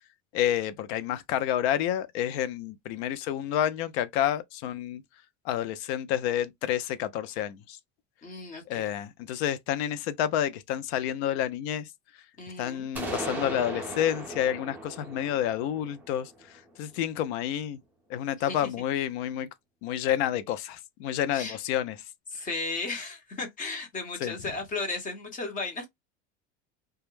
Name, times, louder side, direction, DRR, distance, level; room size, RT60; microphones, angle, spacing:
voice 1, 0.3-5.0 5.5-7.8 8.7-11.9 12.6-16.3 16.8-17.8 18.1-19.5 19.8-21.9 24.2-24.3, left 11 dB, 65° left, 0.5 m, -29 dB
voice 2, 8.2-8.9 12.4-12.9 18.4-18.7 21.3-21.6 22.3-25.9, left 3 dB, 25° left, 0.9 m, -35 dB
sound 1, 13.0-16.8, right 1 dB, 5° right, 0.5 m, -37 dB
2.3 x 2.0 x 3.1 m
supercardioid pair, 150°, 35 cm